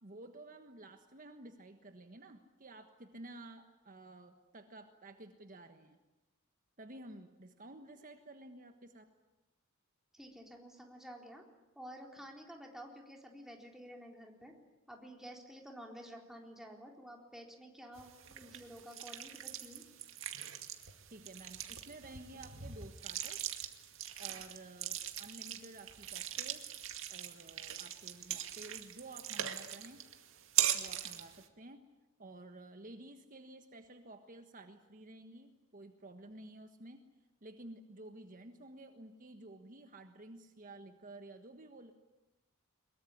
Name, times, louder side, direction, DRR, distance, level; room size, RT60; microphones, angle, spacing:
voice 1, 0.0-6.0 6.8-9.1 21.1-23.6 24.2-26.8 27.1-30.0 30.7-31.8 32.2-37.0 37.4-41.9, right 2 dB, 40° right, 6 dB, 1.4 m, -52 dB
voice 2, 10.1-11.4 11.8-14.5 14.9-19.8, equal, ahead, 1 dB, 4.0 m, -51 dB
sound 1, 18.0-31.5, right 11 dB, 65° right, 2.2 m, -40 dB
23.0 x 22.0 x 9.9 m, 1.0 s
head